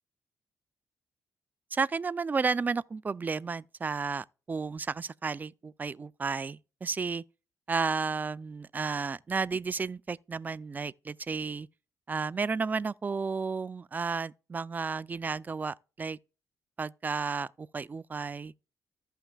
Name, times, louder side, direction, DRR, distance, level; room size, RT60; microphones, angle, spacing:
voice 1, 1.7-7.2 7.7-11.7 12.1-16.2 16.8-18.5, right 4 dB, 25° right, 0.3 m, -32 dB
14.5 x 5.7 x 2.3 m
cardioid pair, 100°, 6 cm